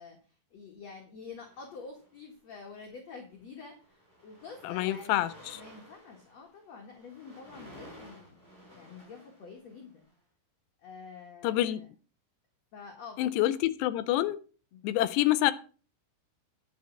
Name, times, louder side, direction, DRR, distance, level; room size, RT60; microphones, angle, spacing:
voice 1, 0.0-5.3 5.5-8.4 8.7-10.1 10.8-11.9 12.7-13.4 14.7-14.9, left 5 dB, 55° left, 1 dB, 2.0 m, -48 dB
sound 1, 1.3-2.3 3.1-3.3 3.6-10.1, equal, 15° right, 5.6 m, -54 dB
voice 2, 4.6-5.6 11.4-11.8 13.2-14.4 14.8-15.5, left 14 dB, 80° left, 14 dB, 2.6 m, -27 dB
10.5 x 6.4 x 6.2 m, 0.38 s
omnidirectional pair, 5.2 m